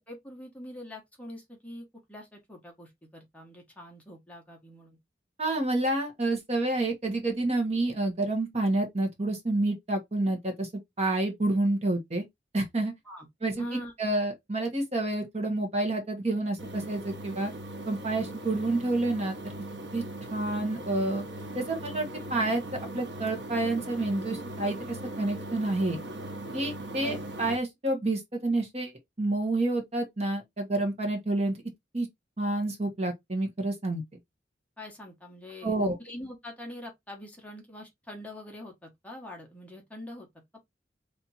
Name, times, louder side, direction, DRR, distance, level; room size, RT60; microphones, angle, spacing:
voice 1, 0.1-5.0 13.0-13.3 13.6-13.9 27.0-27.3 34.8-40.3, left 1 dB, 10° left, 1.2 m, -44 dB
voice 2, 5.4-10.7 11.0-12.2 12.5-12.9 13.4-13.6 14.0-17.5 17.9-19.5 19.9-20.0 20.3-21.2 21.5-22.6 22.9-26.0 26.5-28.9 29.2-31.6 31.9-32.1 32.4-34.0 35.6-36.0, right 2 dB, 35° right, 1.2 m, -29 dB
sound 1, 16.6-27.6, right 1 dB, 85° right, 1.0 m, -39 dB
3.4 x 2.9 x 4.1 m
head